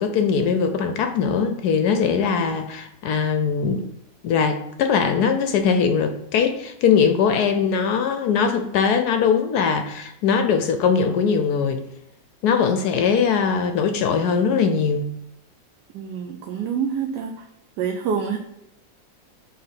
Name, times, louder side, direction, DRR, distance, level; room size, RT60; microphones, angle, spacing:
voice 1, 0.0-3.9 4.2-11.9 12.4-15.1, left 6 dB, 70° left, 7 dB, 1.0 m, -21 dB
voice 2, 15.9-17.4 17.8-18.4, right 7 dB, 70° right, 3 dB, 1.1 m, -26 dB
5.6 x 3.3 x 5.7 m, 0.80 s
omnidirectional pair, 2.0 m